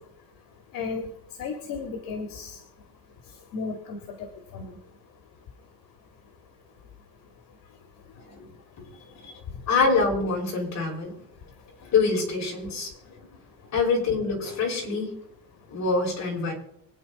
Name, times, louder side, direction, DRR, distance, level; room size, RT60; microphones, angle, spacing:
voice 1, 0.7-1.1 1.4-2.6 3.5-4.3 4.5-4.8, left 4 dB, 80° left, 4 dB, 2.1 m, -34 dB
voice 2, 9.7-11.1 11.8-13.3 13.7-15.2 15.7-16.5, left 4 dB, 55° left, -1 dB, 5.8 m, -25 dB
25.0 x 9.4 x 4.1 m, 0.76 s
cardioid pair, 155°, 34 cm